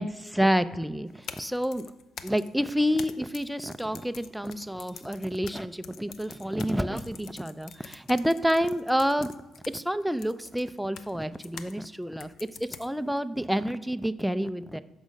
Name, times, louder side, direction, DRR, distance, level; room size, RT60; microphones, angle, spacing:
voice 1, 0.0-1.9 2.2-9.3 9.7-12.3 12.8-14.8, equal, ahead, 11 dB, 0.4 m, -28 dB
sound 1, 1.1-11.8 12.2-13.2, left 7 dB, 70° left, 0.5 m, -47 dB
8.3 x 6.3 x 5.2 m, 1.1 s
cardioid pair, 90°, 0 cm